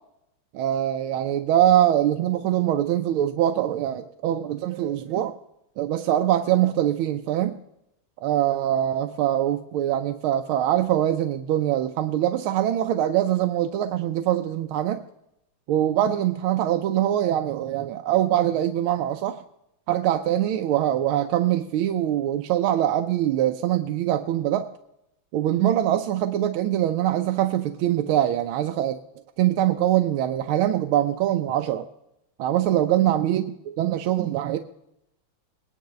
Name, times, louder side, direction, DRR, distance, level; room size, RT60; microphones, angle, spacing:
voice 1, 0.5-5.3 5.8-7.6 8.2-15.0 15.7-19.4 19.9-24.7 25.3-29.0 29.4-31.9 32.4-33.5 33.8-34.6, right 12 dB, 80° right, 7 dB, 1.4 m, -23 dB
20.5 x 10.5 x 3.2 m, 0.83 s
omnidirectional pair, 2.4 m